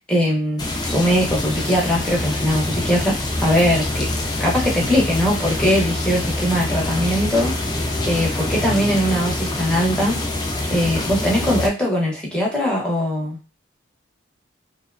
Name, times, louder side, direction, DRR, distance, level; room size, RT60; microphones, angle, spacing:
voice 1, 0.1-0.6 0.9-4.1 4.4-7.5 8.0-10.2 10.7-13.4, equal, 5° left, -3 dB, 0.7 m, -20 dB
sound 1, 0.6-11.7, left 1 dB, 20° left, 0.4 m, -25 dB
2.8 x 2.1 x 2.4 m, 0.29 s
head